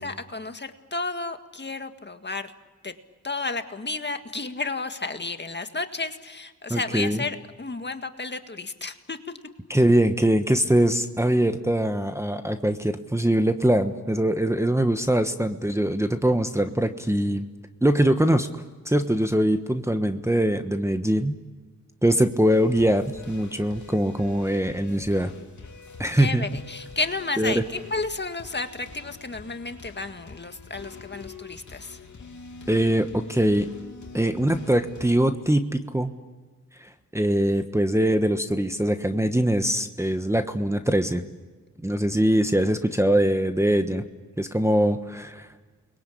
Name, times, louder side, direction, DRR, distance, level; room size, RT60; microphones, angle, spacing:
voice 1, 0.0-2.5 2.8-2.9 3.2-9.2 26.2-32.0, left 3 dB, 35° left, 7 dB, 1.8 m, -32 dB
voice 2, 6.7-7.2 9.7-17.5 17.8-18.5 18.8-21.3 22.0-25.3 26.0-26.4 27.4-27.6 32.7-33.7 34.1-36.1 36.8-41.2 41.8-44.0 44.4-45.5, right 1 dB, 10° right, 8 dB, 1.3 m, -22 dB
sound 1, 22.5-35.1, left 4 dB, 65° left, 3.1 m, -45 dB
29.5 x 22.0 x 8.5 m, 1.4 s
cardioid pair, 70°, 31 cm